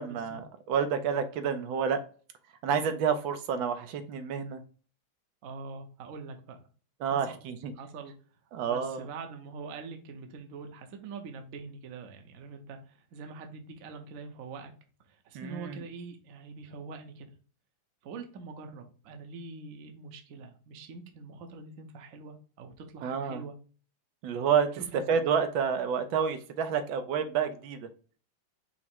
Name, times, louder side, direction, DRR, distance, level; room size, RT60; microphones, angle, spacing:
voice 1, 0.0-2.0 2.6-4.6 7.0-7.7 8.5-9.1 15.3-15.8 23.0-23.4 24.2-24.7 25.1-27.9, right 7 dB, 75° right, 8 dB, 1.3 m, -29 dB
voice 2, 5.4-6.6 7.0-7.4 7.7-8.1 8.6-14.7 15.1-17.3 18.0-23.5 24.7-25.0, right 4 dB, 60° right, 4 dB, 0.9 m, -44 dB
5.8 x 2.0 x 4.3 m, 0.39 s
omnidirectional pair, 2.2 m